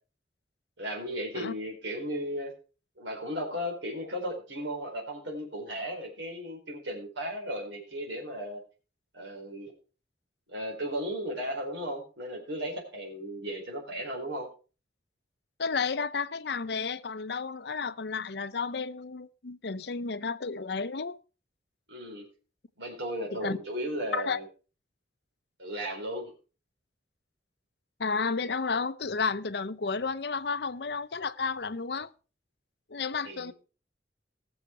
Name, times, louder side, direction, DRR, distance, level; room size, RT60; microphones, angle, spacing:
voice 1, 0.8-2.5 3.0-8.6 9.1-9.7 10.5-14.5 21.9-22.3 22.8-24.4 25.6-26.3 33.2-33.5, equal, 90° right, 4.4 m, -35 dB
voice 2, 15.6-21.2 23.3-23.6 24.1-24.4 28.0-32.1 32.9-33.5, left 4 dB, 65° left, 0.7 m, -32 dB
18.5 x 7.2 x 4.5 m
head